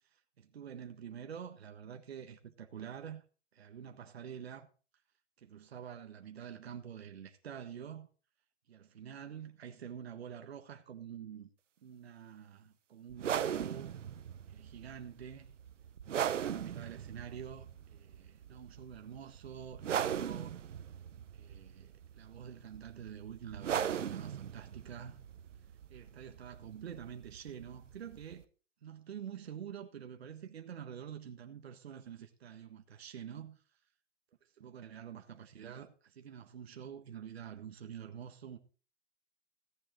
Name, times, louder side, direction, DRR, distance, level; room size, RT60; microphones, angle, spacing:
voice 1, 0.4-3.2 3.5-4.7 5.4-8.1 8.7-11.5 11.8-13.9 14.5-15.5 16.1-20.5 21.3-25.2 25.9-28.4 28.8-33.6 34.6-38.6, right 8 dB, 60° right, 1.5 m, -47 dB
sound 1, 13.1-28.4, right 9 dB, 85° right, 1.1 m, -39 dB
15.0 x 9.8 x 3.9 m
hypercardioid pair, 175°, 36 cm